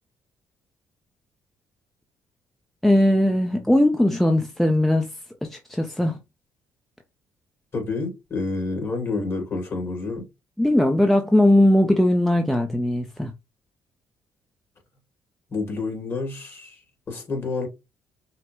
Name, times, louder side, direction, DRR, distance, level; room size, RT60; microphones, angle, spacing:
voice 1, 2.8-5.1 5.4-6.2 10.6-13.3, left 1 dB, 5° left, 0.6 m, -19 dB
voice 2, 7.7-10.3 15.5-17.7, left 3 dB, 40° left, 2.5 m, -29 dB
5.7 x 2.1 x 3.1 m
supercardioid pair, 75°, 7 cm